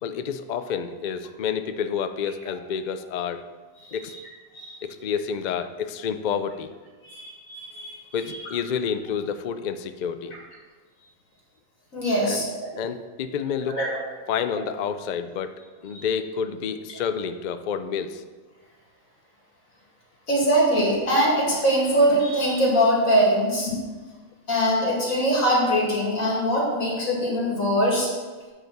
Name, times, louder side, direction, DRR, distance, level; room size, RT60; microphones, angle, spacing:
voice 1, 0.0-3.4 3.9-4.2 4.8-6.7 8.1-10.4 12.2-12.4 12.8-13.8 14.3-18.2, left 7 dB, 65° left, 10 dB, 0.4 m, -29 dB
voice 2, 7.0-8.0 11.9-12.7 13.7-14.0 15.9-16.0 20.3-23.8 24.5-28.1, equal, 90° left, -3 dB, 2.7 m, -22 dB
9.2 x 5.0 x 5.9 m, 1.4 s
omnidirectional pair, 1.4 m